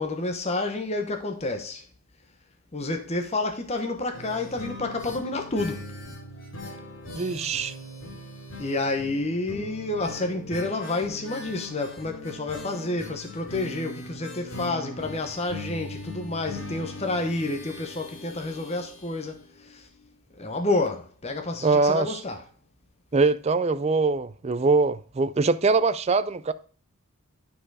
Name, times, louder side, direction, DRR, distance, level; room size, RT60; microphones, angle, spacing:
voice 1, 0.0-1.8 2.7-5.9 8.6-19.4 19.7-19.8 20.4-22.4, left 2 dB, 30° left, 0.9 m, -29 dB
sound 1, 4.1-19.8 20.1-20.2 20.4-20.5, left 2 dB, 60° left, 2.4 m, -40 dB
voice 2, 7.1-7.7 21.6-22.2 23.1-26.5, right 3 dB, 30° right, 0.4 m, -23 dB
9.9 x 4.5 x 4.8 m
head